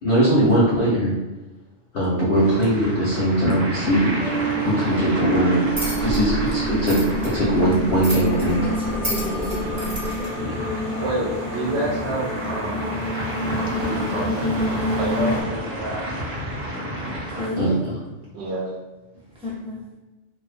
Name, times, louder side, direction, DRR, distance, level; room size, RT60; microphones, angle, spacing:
voice 1, 0.0-1.1 1.9-5.7 6.0-8.6 10.4-10.6 17.6-17.9, right 1 dB, 60° left, -7 dB, 0.7 m, -20 dB
sound 1, 2.3-17.5, equal, 85° right, 1.2 m, -32 dB
sound 2, 3.8-15.4, right 1 dB, 20° left, 0.8 m, -28 dB
sound 3, 5.7-10.3, equal, 30° right, 0.8 m, -31 dB
voice 2, 8.6-10.0 17.3-17.8 19.4-19.8, left 1 dB, 5° right, -7 dB, 0.4 m, -31 dB
voice 3, 11.0-12.9 13.8-14.5 15.0-16.1 18.3-18.7, right 1 dB, 65° right, -2 dB, 0.8 m, -28 dB
2.4 x 2.1 x 2.5 m, 1.1 s
omnidirectional pair, 1.2 m